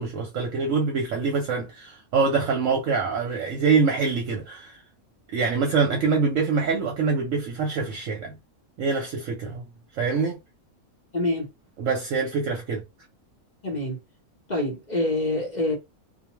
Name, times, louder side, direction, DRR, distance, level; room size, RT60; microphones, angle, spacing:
voice 1, 0.0-4.8 5.3-8.3 8.8-9.6 9.9-10.4 11.8-12.8, right 4 dB, 65° right, 1.0 m, -25 dB
voice 2, 11.1-11.5 13.6-14.0 14.5-15.8, left 1 dB, 35° left, 0.8 m, -26 dB
2.5 x 2.1 x 3.0 m
omnidirectional pair, 1.6 m